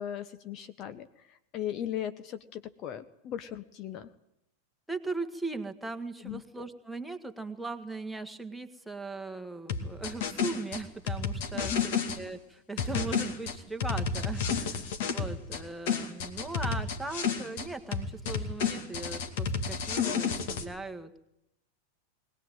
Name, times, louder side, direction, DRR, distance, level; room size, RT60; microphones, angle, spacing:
voice 1, 0.0-4.1 6.2-6.4 11.5-12.0, left 10 dB, 35° left, 10 dB, 1.0 m, -38 dB
voice 2, 4.9-21.2, right 3 dB, ahead, 4 dB, 1.8 m, -39 dB
sound 1, 9.7-12.2 12.8-15.6 15.9-17.7 17.9-20.6, left 6 dB, 50° left, 2.4 m, -31 dB
21.5 x 19.0 x 9.1 m, 0.83 s
figure-of-eight pair, 90°, 0 cm